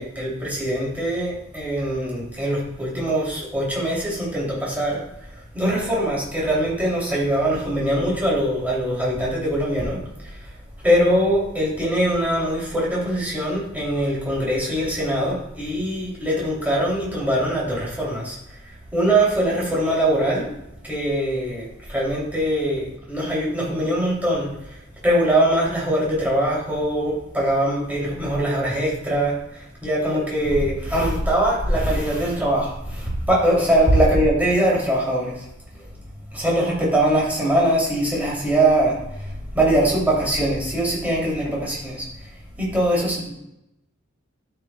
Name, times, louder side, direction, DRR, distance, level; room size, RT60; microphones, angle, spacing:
voice 1, 0.0-5.0 5.5-10.3 10.8-18.4 18.9-20.5 20.8-24.5 25.0-35.4 35.8-35.9 36.3-42.1 42.6-43.3, right 1 dB, 10° right, -5 dB, 2.9 m, -22 dB
12.0 x 6.9 x 2.3 m, 0.83 s
head